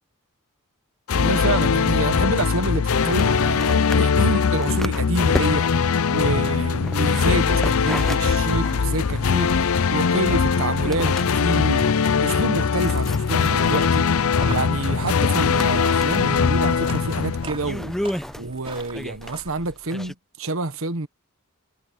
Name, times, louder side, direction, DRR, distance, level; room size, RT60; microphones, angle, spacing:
sound 1, 1.1-18.1, left 5 dB, 80° left, 0.6 m, -21 dB
voice 1, 1.1-5.7 6.1-11.9 12.2-14.1 14.5-18.0 18.4-21.1, right 2 dB, 65° right, 1.3 m, -27 dB
sound 2, 2.8-20.1, equal, ahead, 0.5 m, -36 dB
sound 3, 14.2-19.7, right 3 dB, 25° right, 4.7 m, -42 dB
head